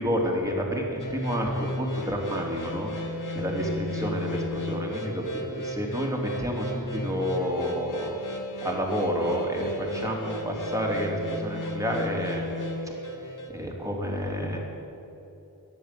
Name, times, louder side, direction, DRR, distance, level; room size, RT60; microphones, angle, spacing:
voice 1, 0.0-8.1 8.6-12.4 13.1-13.2 13.5-14.6, equal, 10° right, -2 dB, 3.3 m, -29 dB
sound 1, 1.0-13.5, left 1 dB, 50° left, 2.1 m, -34 dB
14.0 x 10.5 x 8.6 m, 2.9 s
wide cardioid pair, 90°, 39 cm